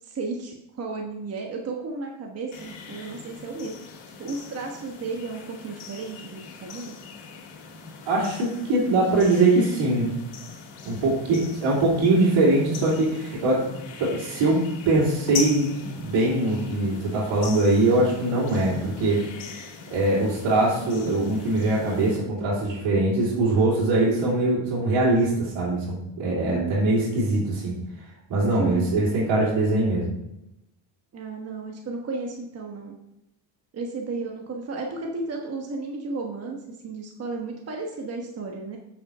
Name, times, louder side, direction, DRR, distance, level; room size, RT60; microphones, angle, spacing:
voice 1, 0.0-3.9 4.2-6.9 26.5-26.9 28.4-28.9 31.1-33.0 33.7-38.8, right 3 dB, 30° right, 1 dB, 1.2 m, -33 dB
sound 1, 2.5-22.2, left 5 dB, 90° left, 2.9 m, -40 dB
voice 2, 8.0-10.1 10.8-13.7 14.0-19.2 19.9-27.8 28.3-30.1, right 2 dB, 70° right, -7 dB, 3.4 m, -22 dB
7.9 x 6.6 x 5.5 m, 0.88 s
cardioid pair, 150°, 46 cm